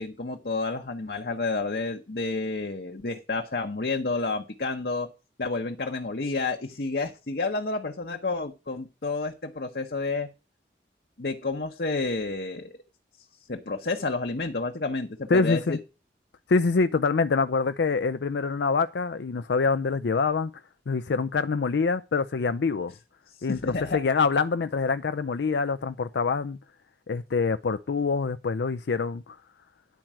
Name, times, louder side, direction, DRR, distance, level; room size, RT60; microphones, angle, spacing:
voice 1, 0.0-5.1 5.4-10.3 11.2-12.7 13.5-15.8 23.4-24.0, left 3 dB, 60° left, 0.9 m, -30 dB
voice 2, 15.3-15.8 16.5-20.5 20.9-22.9 23.4-26.6 27.1-29.4, left 4 dB, 80° left, 0.5 m, -25 dB
10.5 x 4.6 x 7.3 m
head